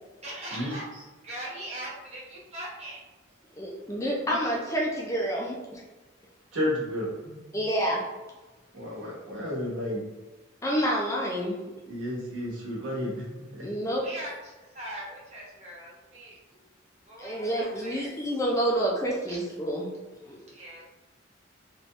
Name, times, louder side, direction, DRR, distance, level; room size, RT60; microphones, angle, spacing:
voice 1, 0.2-0.8 1.2-3.3 13.6-16.7 17.0-18.4 19.3-19.4 20.2-20.8, right 1 dB, 30° right, -6 dB, 0.9 m, -41 dB
voice 2, 3.6-5.8 7.5-8.1 10.6-11.6 13.6-14.0 17.2-19.9 20.2-20.4, equal, 15° left, -3 dB, 0.3 m, -28 dB
voice 3, 6.5-7.4 8.7-10.0 11.8-13.7, left 1 dB, 75° right, -5 dB, 1.1 m, -32 dB
2.8 x 2.2 x 3.0 m, 1.1 s
head